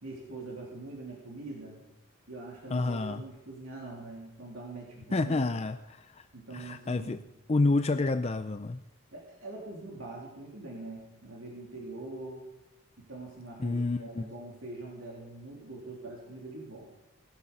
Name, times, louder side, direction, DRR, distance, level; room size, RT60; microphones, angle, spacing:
voice 1, 0.0-1.8 2.3-5.5 6.3-7.2 9.1-12.5 13.0-16.9, right 2 dB, 90° right, -3 dB, 3.3 m, -43 dB
voice 2, 2.7-3.2 5.1-6.3 6.5-7.2 7.5-8.8 13.6-14.3, left 3 dB, 30° left, 10 dB, 0.5 m, -29 dB
19.0 x 12.5 x 5.5 m, 0.96 s
head